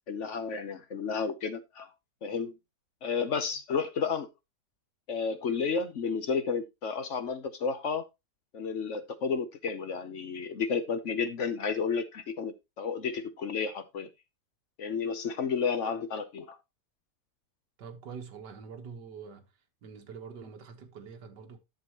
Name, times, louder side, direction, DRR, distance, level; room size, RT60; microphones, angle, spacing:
voice 1, 0.1-1.9 2.2-2.5 3.0-4.3 5.1-8.0 8.5-14.1 14.8-16.6, left 5 dB, 55° left, 1.0 m, -32 dB
voice 2, 17.8-19.5 19.8-21.6, right 6 dB, 75° right, 1.9 m, -45 dB
10.5 x 7.2 x 3.0 m
omnidirectional pair, 1.8 m